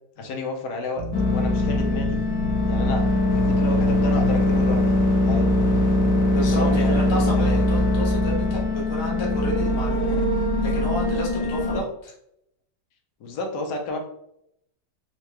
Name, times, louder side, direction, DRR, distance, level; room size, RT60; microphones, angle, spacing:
voice 1, 0.2-1.0 1.3-2.2 2.7-3.0 3.3-4.8 5.3-5.5 6.5-7.6 11.7-11.8 13.2-14.0, left 2 dB, 80° left, 2 dB, 1.2 m, -31 dB
sound 1, 1.0-8.7, left 2 dB, 85° right, 1.3 m, -31 dB
sound 2, 1.1-11.8, left 1 dB, 65° left, 1.0 m, -21 dB
voice 2, 6.3-11.8, equal, 30° left, -3 dB, 0.5 m, -31 dB
3.7 x 2.2 x 3.0 m, 0.74 s
omnidirectional pair, 1.8 m